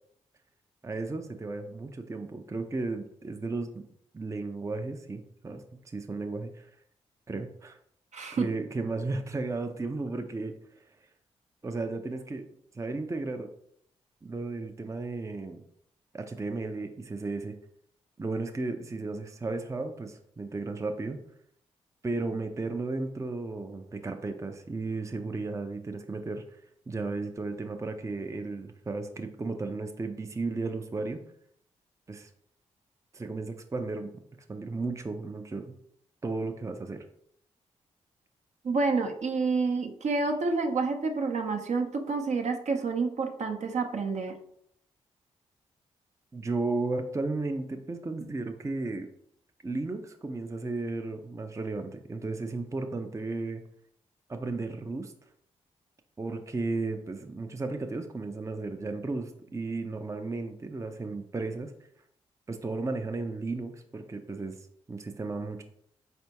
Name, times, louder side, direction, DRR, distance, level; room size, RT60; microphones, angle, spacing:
voice 1, 0.8-3.8 4.1-6.7 7.3-7.8 8.3-10.8 11.6-12.5 12.7-13.5 14.2-15.6 16.1-17.6 18.2-21.2 22.0-26.6 26.9-31.2 32.1-32.3 33.1-34.1 34.5-35.7 36.2-37.0 46.3-49.1 49.6-53.6 54.3-55.1 56.2-61.7 62.5-65.6, right 3 dB, 20° right, 5 dB, 0.5 m, -34 dB
voice 2, 8.1-8.5 38.6-44.4, right 4 dB, 60° right, 3 dB, 0.7 m, -28 dB
4.3 x 3.3 x 2.9 m, 0.68 s
supercardioid pair, 40°, 14 cm